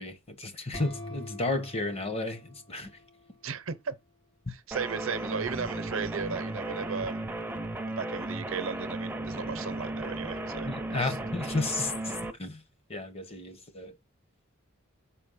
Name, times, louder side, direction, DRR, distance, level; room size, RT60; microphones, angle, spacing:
voice 1, 0.0-3.0 10.6-12.1 12.4-12.6 12.9-13.9, left 2 dB, 30° left, 0.9 m, -33 dB
sound 1, 0.7-3.5, left 1 dB, 60° left, 2.5 m, -45 dB
voice 2, 3.4-3.9 4.5-7.3 7.9-11.2, right 6 dB, 70° right, 0.7 m, -36 dB
sound 2, 4.7-12.3, right 1 dB, 10° right, 0.6 m, -35 dB
5.4 x 4.3 x 5.6 m
head